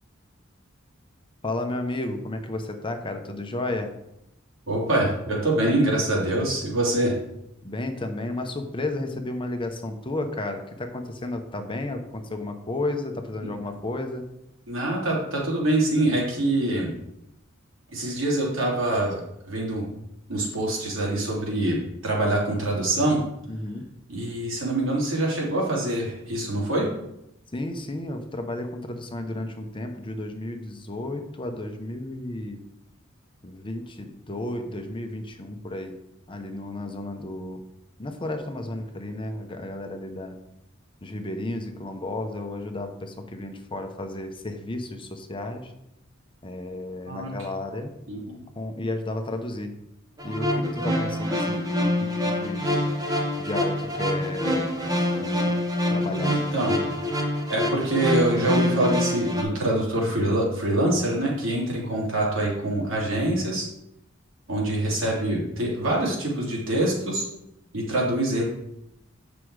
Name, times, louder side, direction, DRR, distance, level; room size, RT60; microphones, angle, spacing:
voice 1, 1.4-3.9 7.6-14.2 23.5-23.8 27.5-32.6 33.4-36.0 36.3-37.6 38.0-40.4 41.0-45.7 46.4-47.9 48.6-49.8 50.2-52.8 53.4-54.8 55.2-55.6 55.9-56.5, left 2 dB, 25° left, 5 dB, 0.8 m, -33 dB
voice 2, 4.7-7.1 13.4-13.5 14.7-16.9 17.9-19.2 19.5-19.9 20.3-23.2 24.1-26.9 47.1-47.3 48.1-48.2 56.3-56.8 57.5-63.7 64.5-67.2 67.7-68.4, right 1 dB, 70° right, -4 dB, 3.1 m, -25 dB
sound 1, 50.2-59.4, left 1 dB, 20° right, 1.4 m, -26 dB
8.4 x 6.0 x 4.8 m, 0.84 s
head